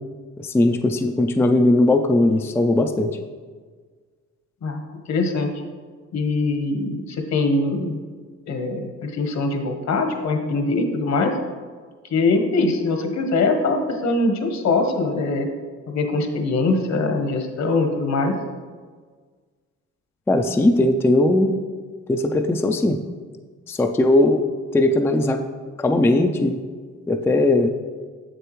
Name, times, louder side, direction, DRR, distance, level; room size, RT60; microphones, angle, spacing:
voice 1, 0.4-3.1 20.3-21.5 22.1-23.0 23.7-24.4 24.7-25.4 25.8-26.6 27.1-27.7, left 2 dB, 10° left, 4 dB, 0.3 m, -18 dB
voice 2, 5.1-5.5 6.1-8.0 8.5-11.3 12.1-15.5 15.9-18.4, left 3 dB, 60° left, 5 dB, 1.1 m, -22 dB
7.2 x 6.6 x 3.1 m, 1.5 s
cardioid pair, 90°, 30 cm